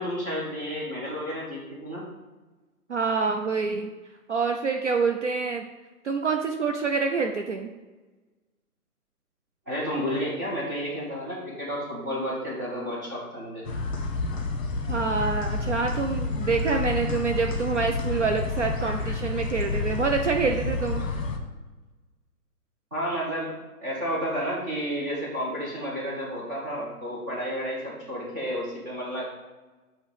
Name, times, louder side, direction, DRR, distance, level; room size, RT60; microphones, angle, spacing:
voice 1, 0.0-2.0 9.7-13.6 22.9-23.5 23.8-29.2, equal, 10° right, -7 dB, 0.8 m, -31 dB
voice 2, 2.9-3.9 4.3-5.7 6.0-7.7 14.9-21.0, right 5 dB, 50° right, 4 dB, 0.5 m, -26 dB
sound 1, 13.6-21.4, left 3 dB, 55° left, 1.2 m, -29 dB
8.1 x 3.0 x 4.9 m, 1.2 s
hypercardioid pair, 170°, 46 cm